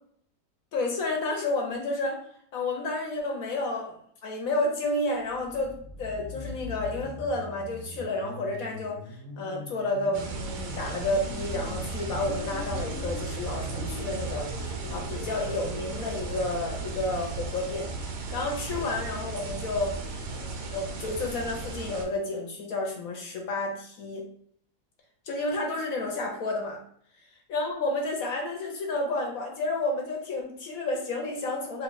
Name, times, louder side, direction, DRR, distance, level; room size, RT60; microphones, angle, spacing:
voice 1, 0.7-2.2 2.5-3.9 4.2-20.0 20.3-24.3 25.3-26.8 27.5-31.8, left 2 dB, 65° left, 0 dB, 1.0 m, -31 dB
sound 1, 5.2-16.4, left 1 dB, ahead, 0.8 m, -43 dB
sound 2, 10.1-22.0, right 3 dB, 80° right, 1.3 m, -35 dB
3.0 x 2.3 x 3.9 m, 0.65 s
omnidirectional pair, 1.8 m